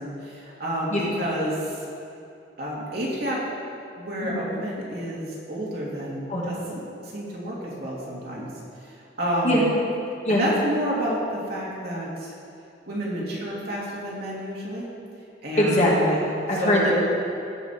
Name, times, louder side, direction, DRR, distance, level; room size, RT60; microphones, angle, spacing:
voice 1, 0.0-1.8 2.6-3.4 4.0-8.5 9.2-9.6 10.3-12.3 12.9-14.9 15.4-16.1 16.6-16.9, equal, 55° right, -6 dB, 2.7 m, -29 dB
voice 2, 15.6-16.9, equal, 40° left, -5 dB, 2.1 m, -22 dB
16.0 x 6.1 x 4.5 m, 2.6 s
head